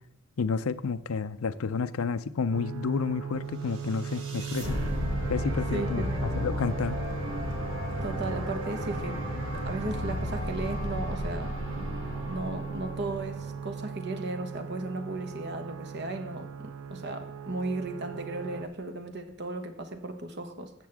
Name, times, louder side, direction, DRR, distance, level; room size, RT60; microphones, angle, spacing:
voice 1, 0.4-4.8 5.3-6.0 6.4-7.0, left 5 dB, 90° left, 14 dB, 0.5 m, -30 dB
sound 1, 2.5-18.7, right 6 dB, 90° right, 0.6 m, -39 dB
sound 2, 3.7-13.9, left 1 dB, 70° right, 2.6 m, -34 dB
voice 2, 5.7-6.3 8.0-9.2 9.5-11.6 12.3-20.7, right 2 dB, 55° right, 7 dB, 1.2 m, -35 dB
13.5 x 8.3 x 3.5 m, 0.89 s
head